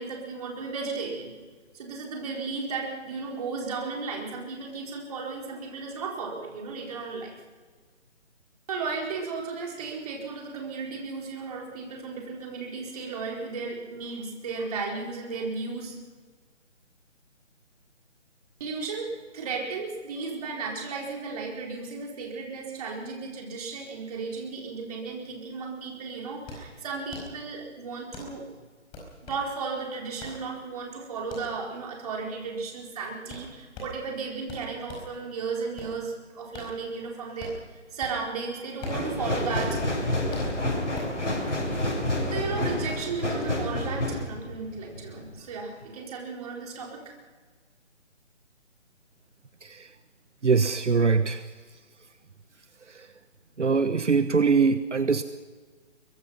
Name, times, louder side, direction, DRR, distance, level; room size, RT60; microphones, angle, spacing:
voice 1, 0.0-1.3 1.7-7.4 8.7-16.0 18.6-28.6 29.2-39.8 42.3-47.2, right 4 dB, 30° right, 0 dB, 4.4 m, -34 dB
sound 1, 26.4-35.2 35.6-38.4 38.6-41.2, left 2 dB, 15° left, 4.9 m, -43 dB
sound 2, 38.8-45.4 45.8-45.9, left 1 dB, 85° left, 7.1 m, -29 dB
voice 2, 49.6-49.9 50.4-51.5 52.9-53.1 53.6-55.2, right 5 dB, 75° right, 11 dB, 1.2 m, -23 dB
23.5 x 21.5 x 5.7 m, 1.4 s
figure-of-eight pair, 150°, 36 cm